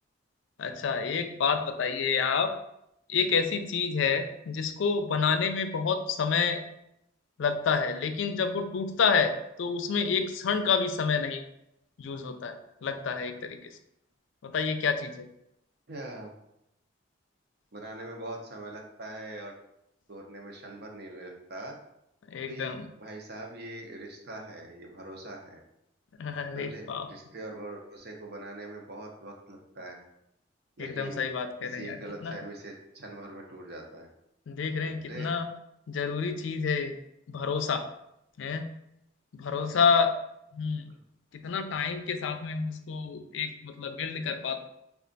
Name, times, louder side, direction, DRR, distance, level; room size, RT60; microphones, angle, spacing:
voice 1, 0.6-2.5 3.1-6.6 7.4-9.3 9.6-11.4 12.0-13.6 14.4-15.3 22.3-22.9 26.2-27.1 30.8-32.4 34.5-35.5 35.9-37.0 37.3-37.9 38.4-38.7 39.3-40.1 40.5-40.8 41.4-44.7, left 5 dB, 85° left, 8 dB, 0.4 m, -28 dB
voice 2, 15.9-16.4 17.7-19.5 20.1-21.8 22.5-25.6 26.5-30.0 30.8-31.3 31.6-34.1 34.8-35.3 39.5-39.8 40.9-41.0, right 1 dB, 55° right, 1 dB, 0.7 m, -42 dB
3.3 x 2.4 x 3.9 m, 0.81 s
head